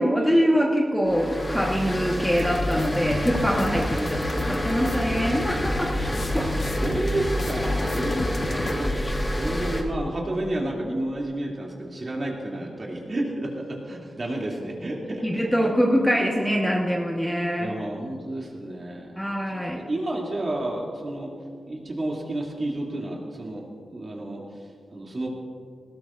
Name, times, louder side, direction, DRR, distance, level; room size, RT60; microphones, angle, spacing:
voice 1, 0.0-5.9 6.3-6.4 8.0-8.3 15.2-17.7 19.2-19.8, equal, 5° left, -2 dB, 1.3 m, -24 dB
sound 1, 1.0-9.8, equal, 20° left, 1.4 m, -29 dB
sound 2, 2.4-8.7, left 3 dB, 55° left, 0.9 m, -31 dB
voice 2, 6.3-15.7 17.6-19.2 19.5-21.3 21.7-23.6 23.9-25.3, right 1 dB, 40° right, -2 dB, 2.7 m, -31 dB
19.5 x 17.5 x 2.6 m, 2.2 s
wide cardioid pair, 115°, 0 cm